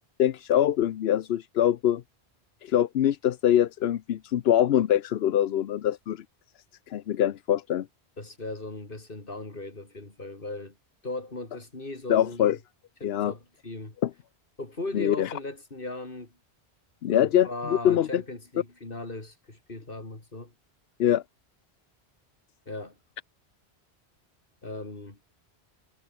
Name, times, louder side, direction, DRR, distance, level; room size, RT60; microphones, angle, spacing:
voice 1, 0.2-2.0 2.6-6.2 6.9-7.9 12.1-12.6 13.0-13.3 14.0-14.1 14.9-15.3 17.0-18.2 21.0-21.2, left 11 dB, 70° left, 0.9 m, -24 dB
voice 2, 8.2-10.8 11.0-12.6 13.0-14.0 14.6-16.3 17.1-20.5 22.7-23.0 24.6-25.2, left 2 dB, 55° left, 3.7 m, -38 dB
omnidirectional pair, 1.1 m